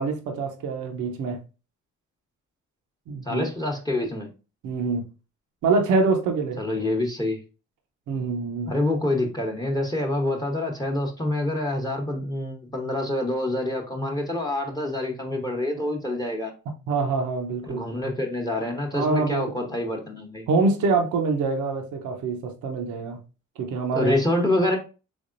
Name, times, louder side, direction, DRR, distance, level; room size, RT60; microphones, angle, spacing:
voice 1, 0.0-1.4 3.1-3.5 4.6-5.0 5.6-6.8 8.1-8.7 16.9-17.9 18.9-19.5 20.5-23.2 23.6-24.2, right 4 dB, 80° right, 0.8 m, -25 dB
voice 2, 3.2-4.3 6.6-7.4 8.7-16.5 17.6-20.5 23.9-24.8, left 1 dB, 15° left, 0.9 m, -26 dB
3.5 x 3.5 x 2.5 m
cardioid pair, 90°, 30 cm